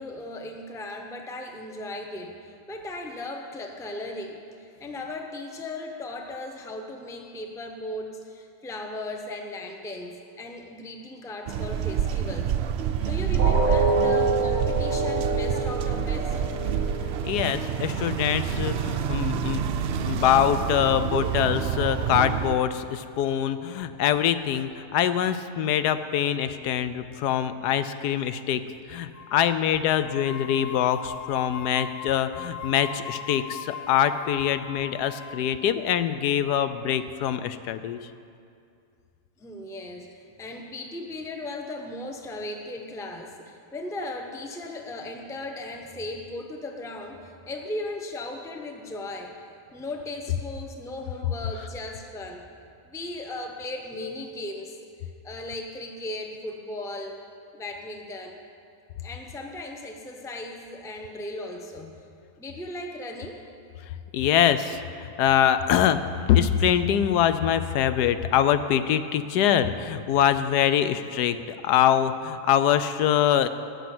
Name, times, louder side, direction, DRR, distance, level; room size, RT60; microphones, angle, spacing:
voice 1, 0.0-12.5 13.0-16.3 39.4-49.4 49.7-52.5 52.8-54.8 55.2-57.2 57.5-58.4 59.0-62.0 62.4-63.4, left 2 dB, 5° left, 3 dB, 0.6 m, -37 dB
sound 1, 11.5-22.5, right 8 dB, 75° right, 0.5 m, -27 dB
sound 2, 13.4-19.4 19.8-19.9 20.4-20.5, right 2 dB, 35° right, 1.1 m, -28 dB
voice 2, 17.2-19.6 20.0-28.6 28.9-38.0 64.1-66.0 66.3-73.5, left 10 dB, 85° left, 11 dB, 1.2 m, -24 dB
sound 3, 29.1-29.6 29.9-35.5, left 8 dB, 60° left, 0.9 m, -39 dB
19.0 x 7.1 x 6.1 m, 2.4 s
omnidirectional pair, 1.7 m